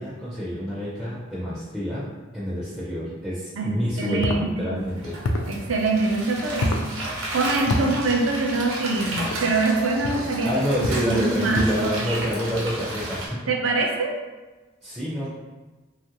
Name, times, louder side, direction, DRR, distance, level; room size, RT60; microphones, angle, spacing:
voice 1, 0.0-2.0 2.3-5.2 7.7-7.9 10.4-13.4 14.8-15.3, equal, 5° right, -9 dB, 0.4 m, -28 dB
voice 2, 3.6-4.8 5.4-12.2 13.5-14.1, right 3 dB, 70° right, 1 dB, 0.5 m, -25 dB
sound 1, 4.2-4.5 5.2-5.6 6.6-6.9 7.7-7.9 9.2-9.4 10.0-10.3 10.8-11.1 11.5-11.9, left 1 dB, 75° left, 0.4 m, -26 dB
sound 2, 4.8-13.3, right 1 dB, 85° right, 0.8 m, -33 dB
2.9 x 2.4 x 2.9 m, 1.2 s
head